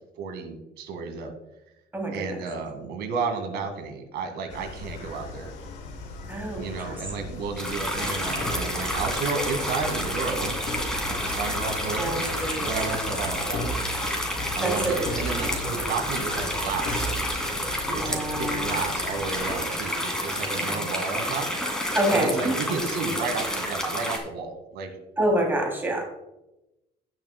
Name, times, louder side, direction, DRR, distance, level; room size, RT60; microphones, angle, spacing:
voice 1, 0.2-1.3 2.1-5.5 6.6-10.5 11.1-12.2 12.6-13.6 14.6-17.1 17.9-21.5 22.1-25.0, right 4 dB, 80° right, 6 dB, 1.9 m, -32 dB
voice 2, 1.9-2.4 6.3-7.0 8.0-8.4 12.0-12.7 14.6-15.6 17.8-18.8 20.6-20.8 21.9-22.5 25.2-26.0, right 1 dB, 10° right, 0 dB, 2.9 m, -28 dB
sound 1, 4.5-19.7, left 3 dB, 90° left, 2.1 m, -38 dB
sound 2, 7.6-24.2, equal, 5° left, 2.4 m, -30 dB
sound 3, 8.4-8.8 10.7-11.0 12.3-12.5 13.5-13.9 15.0-15.7 16.8-17.3, equal, 65° left, 2.3 m, -33 dB
18.0 x 6.9 x 2.2 m, 0.93 s
cardioid pair, 110°, 17 cm